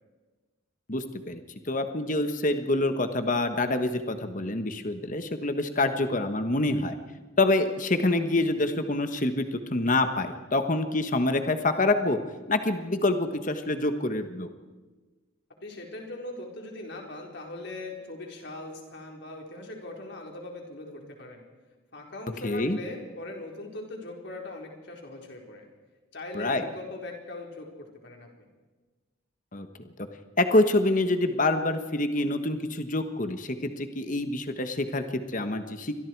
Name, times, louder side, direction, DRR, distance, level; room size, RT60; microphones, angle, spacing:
voice 1, 0.9-6.9 7.4-12.2 12.5-14.5 22.4-22.8 26.3-26.6 29.5-29.7 30.0-30.1 30.4-36.0, left 2 dB, 40° left, 8 dB, 1.3 m, -26 dB
voice 2, 15.6-21.4 21.9-25.6 26.1-28.5, left 2 dB, 55° left, 1 dB, 4.4 m, -40 dB
29.0 x 24.5 x 4.7 m, 1.3 s
head